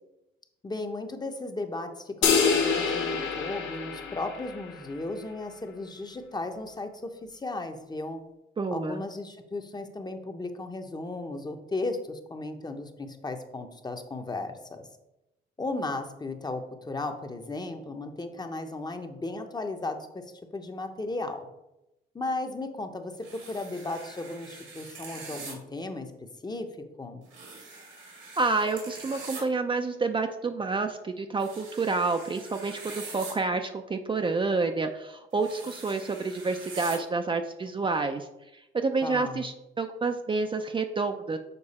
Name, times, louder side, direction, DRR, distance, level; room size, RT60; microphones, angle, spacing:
voice 1, 0.6-8.2 8.7-14.9 15.6-20.2 20.5-21.5 22.1-26.1 26.4-26.7 27.0-27.2 39.0-39.5, left 2 dB, 20° left, 6 dB, 0.8 m, -35 dB
sound 1, 2.2-4.8, left 5 dB, 70° left, 1.2 m, -26 dB
voice 2, 8.6-9.0 28.4-38.3 38.7-41.4, right 3 dB, 25° right, 6 dB, 0.5 m, -29 dB
sound 2, 23.2-25.5 27.3-29.4 31.4-33.3 35.3-37.0, right 4 dB, 85° right, 2.1 m, -44 dB
6.8 x 4.6 x 4.2 m, 0.93 s
cardioid pair, 90°, 20 cm